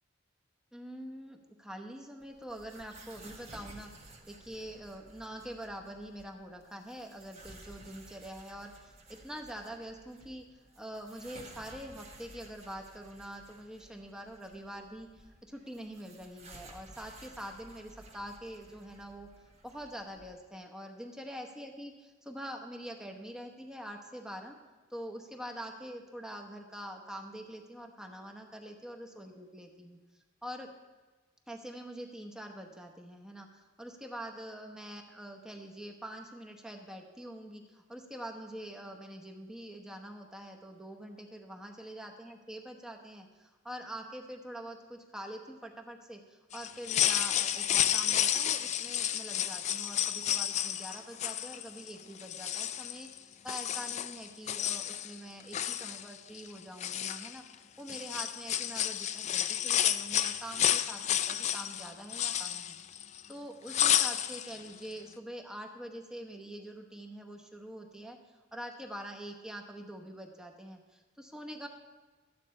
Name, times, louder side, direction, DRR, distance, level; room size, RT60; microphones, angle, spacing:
voice 1, 0.7-10.4 10.8-19.3 19.6-24.6 24.9-30.0 30.4-30.7 31.5-53.1 53.4-57.4 57.8-63.0 63.3-68.2 68.5-71.7, equal, 5° right, 2 dB, 1.0 m, -45 dB
sound 1, 2.2-20.3, right 2 dB, 35° right, 1.2 m, -55 dB
sound 2, 46.5-51.9 52.2-53.2 53.5-55.1 55.4-56.5 56.8-57.5 57.9-63.3 63.7-64.6 64.8-64.9, left 10 dB, 35° left, 0.3 m, -31 dB
12.5 x 9.0 x 4.3 m, 1.2 s
head